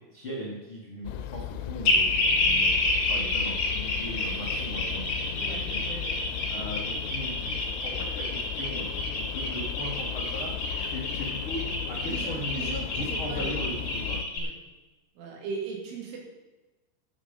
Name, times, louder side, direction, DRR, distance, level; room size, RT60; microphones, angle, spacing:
voice 1, 0.1-5.8 6.2-14.2, equal, 70° left, -3 dB, 1.2 m, -39 dB
sound 1, 1.1-14.3, left 11 dB, 85° left, 3.0 m, -36 dB
sound 2, 1.8-14.4, left 2 dB, 45° left, 3.3 m, -29 dB
voice 2, 5.4-6.2 12.1-13.5 14.3-14.5 15.2-16.2, right 5 dB, 90° right, -1 dB, 5.0 m, -38 dB
12.5 x 9.4 x 5.3 m, 1.1 s
omnidirectional pair, 5.5 m